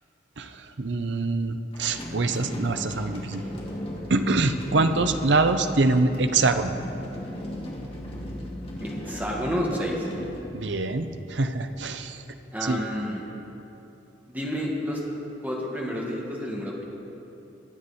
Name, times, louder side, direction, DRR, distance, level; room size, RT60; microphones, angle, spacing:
voice 1, 0.8-3.4 4.1-6.7 10.5-12.2 12.6-12.8, right 3 dB, 65° right, 8 dB, 0.7 m, -24 dB
sound 1, 1.7-11.2, equal, 30° left, 1.8 m, -37 dB
voice 2, 8.8-10.1 12.5-13.2 14.3-15.0 15.4-16.8, equal, 10° right, -3 dB, 1.9 m, -30 dB
23.0 x 8.1 x 4.2 m, 3.0 s
head